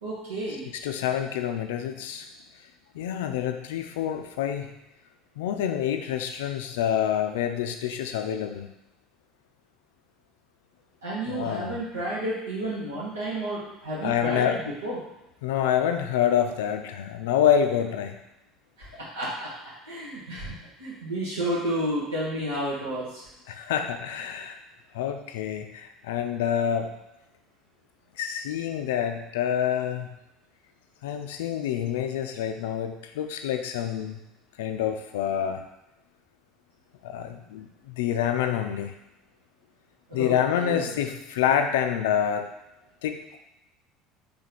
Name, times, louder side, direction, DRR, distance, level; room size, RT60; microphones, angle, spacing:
voice 1, 0.0-0.7 11.0-15.0 18.8-19.5 19.8-23.3 40.1-40.3 40.6-41.0, right 1 dB, 80° right, -8 dB, 1.0 m, -31 dB
voice 2, 0.8-2.3 2.9-4.7 5.4-8.7 11.3-11.8 14.0-14.6 15.4-18.2 23.5-24.6 24.9-26.9 28.2-30.1 31.0-34.2 34.6-35.6 37.0-38.9 40.1-42.5 43.0-43.4, left 9 dB, 70° left, 6 dB, 0.3 m, -27 dB
4.1 x 2.8 x 3.9 m, 0.92 s
figure-of-eight pair, 65°, 0 cm